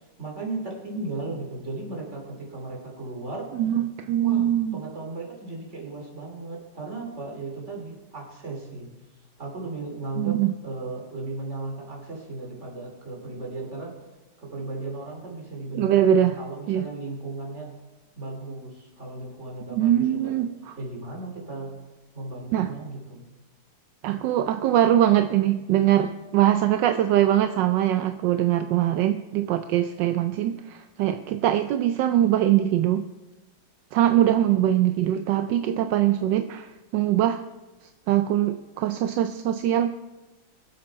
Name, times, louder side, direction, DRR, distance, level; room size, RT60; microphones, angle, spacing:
voice 1, 0.2-3.5 4.2-8.9 9.4-10.4 10.6-13.9 14.4-15.9 16.4-17.7 18.2-20.3 20.8-21.7 22.1-23.2, right 2 dB, 35° right, 0 dB, 3.0 m, -36 dB
voice 2, 3.5-4.7 10.2-10.5 15.7-16.4 16.7-16.9 19.7-20.5 22.5-22.7 24.0-33.0 33.9-37.4 38.1-39.9, right 11 dB, 75° right, 9 dB, 1.1 m, -22 dB
22.0 x 7.7 x 4.6 m, 1.1 s
omnidirectional pair, 2.3 m